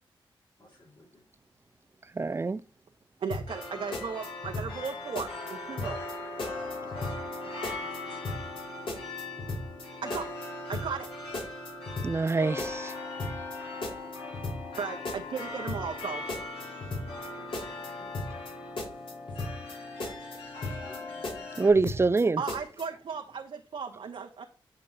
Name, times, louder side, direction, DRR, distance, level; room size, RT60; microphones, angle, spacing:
voice 1, 0.6-1.2 7.0-7.1 17.4-18.4 20.6-21.6, left 1 dB, 50° left, 4.3 m, -56 dB
voice 2, 2.2-2.6 12.0-12.9 21.6-22.4, right 3 dB, 25° right, 0.4 m, -25 dB
voice 3, 3.2-6.0 10.0-10.3 10.7-11.1 14.8-16.3 22.4-24.5, right 6 dB, 70° right, 0.9 m, -36 dB
sound 1, 3.3-3.7 3.9-4.9 5.2-5.5 5.8-6.1 6.4-7.4 7.6-8.0 8.2-8.6 8.9-9.8 10.1-10.5 10.7-11.1 11.3-12.3 12.6-12.9 13.2-13.6 13.8-14.8 15.1-15.4 15.7-16.0 16.3-17.3 17.5-17.9 18.1-18.5 18.8-19.7 20.0-20.4 20.6-21.0 21.2-22.2 22.5-22.8, left 2 dB, 65° left, 3.7 m, -36 dB
sound 2, 3.5-21.7, left 2 dB, 80° left, 3.3 m, -40 dB
8.2 x 5.2 x 3.9 m
wide cardioid pair, 90°, 9 cm